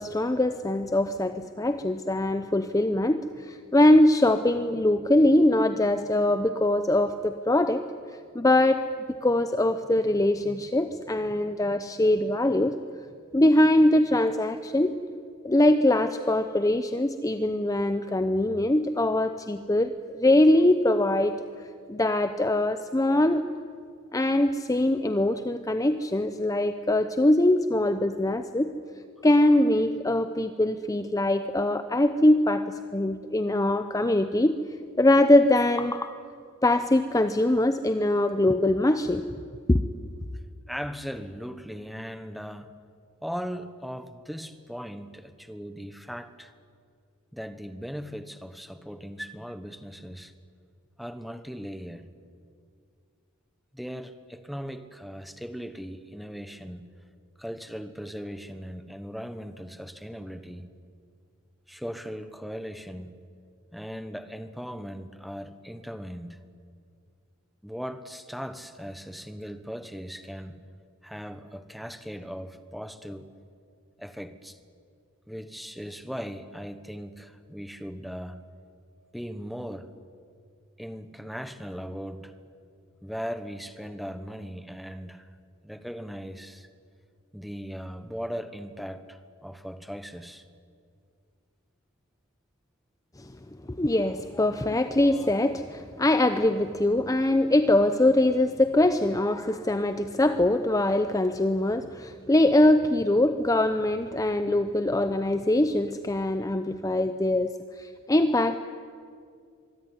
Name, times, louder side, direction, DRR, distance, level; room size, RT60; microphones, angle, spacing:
voice 1, 0.0-7.9 8.3-8.9 9.2-12.8 13.3-15.0 15.4-21.4 21.9-23.4 24.1-28.7 29.2-34.6 35.0-36.2 36.6-39.4 39.7-39.8 93.2-93.3 93.7-108.6, left 1 dB, 15° left, 10 dB, 0.7 m, -23 dB
voice 2, 40.7-42.7 43.2-46.5 47.3-50.3 51.0-52.1 53.7-56.9 57.4-60.7 61.7-63.1 63.7-66.4 67.6-70.6 71.0-73.3 74.0-74.6 75.3-78.4 79.1-79.9 80.8-82.3 83.0-85.3 85.6-86.7 87.3-90.4, equal, ahead, 10 dB, 1.2 m, -38 dB
25.0 x 22.5 x 9.8 m, 2.3 s
head